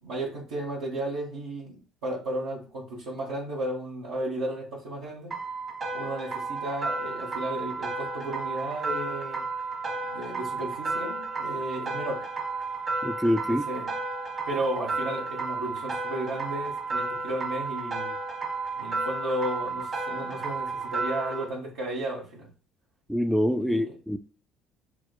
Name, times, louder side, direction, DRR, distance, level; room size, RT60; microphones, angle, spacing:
voice 1, 0.0-1.8 2.0-5.3 5.9-9.5 10.1-12.2 13.5-13.9 14.5-18.1 18.7-22.5 23.6-23.9, right 1 dB, 75° right, 1.2 m, -34 dB
sound 1, 5.3-21.4, right 3 dB, 40° right, 1.3 m, -32 dB
voice 2, 13.0-13.7 23.1-24.2, equal, ahead, 0.3 m, -25 dB
5.9 x 2.1 x 2.2 m
hypercardioid pair, 60°, 0 cm